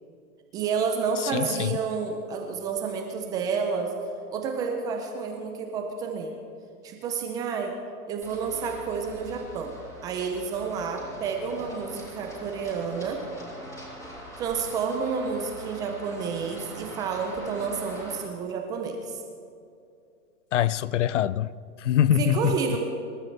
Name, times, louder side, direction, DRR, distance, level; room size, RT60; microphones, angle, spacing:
voice 1, 0.5-3.9 4.3-6.3 6.8-7.7 8.1-9.7 10.0-13.2 14.4-19.2 22.2-22.8, right 5 dB, 10° right, 0.4 m, -30 dB
voice 2, 1.3-1.8 20.5-21.5 21.8-22.6, left 11 dB, 55° left, 0.5 m, -23 dB
Run, 8.2-18.2, equal, 5° left, 4.5 m, -43 dB
25.5 x 13.0 x 3.3 m
hypercardioid pair, 125°, 45 cm